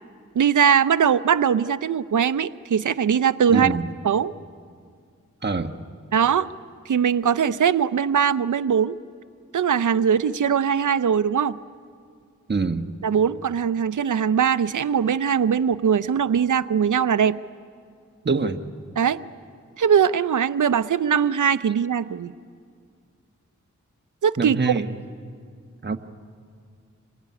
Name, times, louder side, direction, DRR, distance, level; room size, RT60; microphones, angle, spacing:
voice 1, 0.3-3.8 4.0-4.3 6.1-6.5 6.9-9.0 9.5-11.6 13.0-17.4 19.0-19.2 19.8-22.3 24.2-24.6, right 7 dB, 75° right, 14 dB, 0.7 m, -21 dB
voice 2, 3.5-3.9 5.4-5.7 12.5-12.9 18.2-18.6 24.4-24.9 25.8-26.0, right 4 dB, 35° right, 5 dB, 1.5 m, -24 dB
27.0 x 20.5 x 9.7 m, 2.2 s
cardioid pair, 50°, 31 cm